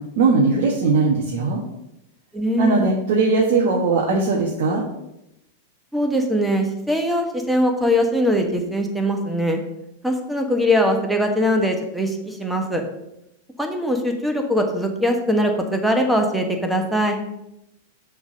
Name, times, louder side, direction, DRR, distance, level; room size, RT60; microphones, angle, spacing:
voice 1, 0.2-1.6 2.6-4.8, right 3 dB, 60° right, -2 dB, 1.2 m, -19 dB
voice 2, 2.3-2.9 5.9-9.6 10.0-12.8 13.6-17.2, equal, ahead, 3 dB, 1.2 m, -21 dB
6.1 x 3.8 x 6.1 m, 0.86 s
hypercardioid pair, 100°, 0 cm